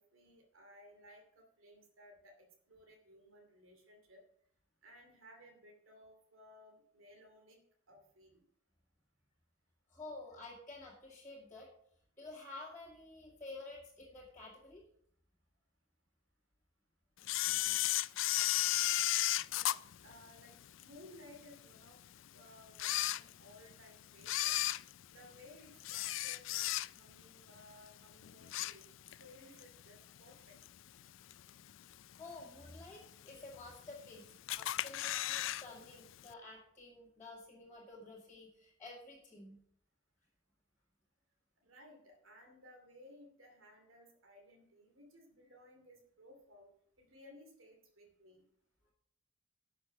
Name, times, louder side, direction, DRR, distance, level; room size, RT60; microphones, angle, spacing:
voice 1, 0.0-4.2 4.8-7.6 7.9-8.4 19.5-19.8 20.0-22.0 22.3-24.5 25.1-26.7 26.9-28.9 29.2-30.6 41.6-46.7 47.0-48.4, left 1 dB, 80° right, 3 dB, 2.6 m, -59 dB
voice 2, 9.9-11.7 12.2-14.9 32.2-34.3 34.6-39.6, left 2 dB, 10° left, -8 dB, 2.2 m, -51 dB
Camera, 17.2-20.8 21.3-21.4 22.1-22.2 22.7-23.7 24.2-27.2 27.6-27.8 28.2-29.2 29.6-29.7 30.6-30.7 31.3-31.7 32.1-32.2 32.4-32.5 32.7-32.8 33.5-34.1 34.5-35.6 35.9-36.0 36.3-36.4, left 15 dB, 70° left, 0.4 m, -34 dB
11.5 x 6.6 x 6.0 m, 0.67 s
head